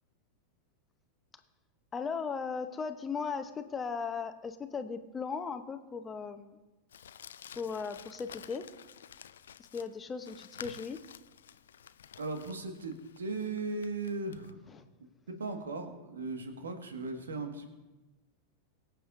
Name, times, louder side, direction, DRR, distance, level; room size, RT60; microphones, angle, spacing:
voice 1, 1.9-6.6 7.6-8.6 9.7-11.0 14.7-14.8, left 5 dB, 20° left, 9 dB, 0.9 m, -37 dB
Crumpling crinkling, 6.9-14.5, left 9 dB, 65° left, 0.4 m, -51 dB
voice 2, 12.2-14.6 15.3-17.7, right 3 dB, 70° right, 5 dB, 1.8 m, -37 dB
23.5 x 7.9 x 2.7 m, 1.1 s
figure-of-eight pair, 90°, 0 cm